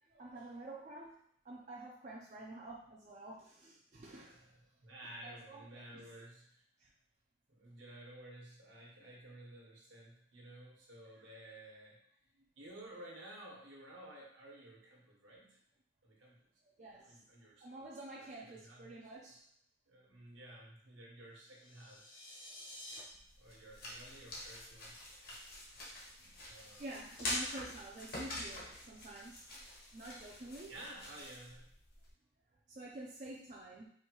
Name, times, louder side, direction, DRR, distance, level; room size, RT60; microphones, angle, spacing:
voice 1, 0.0-1.2 1.4-4.5 5.2-6.1 6.8-6.9 11.2-11.3 16.8-17.2 17.6-19.5 23.0-23.1 26.1-26.3 26.8-29.5 29.9-30.7 32.7-33.9, right 2 dB, 35° right, -4 dB, 0.5 m, -49 dB
voice 2, 4.1-4.5 4.8-6.6 7.5-12.0 12.6-15.6 16.0-16.5 17.0-17.6 18.2-18.9 19.9-22.2 23.4-25.0 26.5-27.2 30.7-31.7, right 1 dB, 75° right, -2 dB, 1.2 m, -53 dB
sound 1, 21.4-23.0, left 1 dB, 90° left, 1.4 m, -51 dB
sound 2, 23.1-32.1, left 1 dB, 50° left, 1.1 m, -45 dB
4.7 x 2.7 x 3.0 m, 0.63 s
head